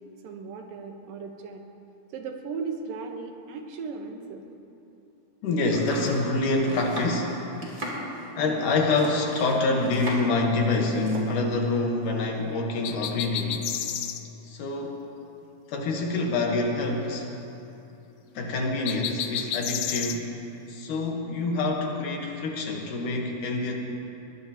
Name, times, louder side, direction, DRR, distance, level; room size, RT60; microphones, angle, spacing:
voice 1, 0.2-1.6 2.1-4.4, right 5 dB, 70° right, 3 dB, 2.7 m, -36 dB
voice 2, 5.4-7.4 8.4-13.7 14.4-15.0 15.7-17.4 18.3-20.3 20.7-23.8, left 2 dB, 65° left, 1 dB, 2.6 m, -26 dB
Domestic sounds home sounds, 5.6-10.4 10.7-11.3, equal, 25° right, 3.0 m, -36 dB
sound 1, 12.8-14.2 18.9-20.2, left 10 dB, 90° left, 2.7 m, -31 dB
21.5 x 20.0 x 3.0 m, 2.8 s
omnidirectional pair, 4.5 m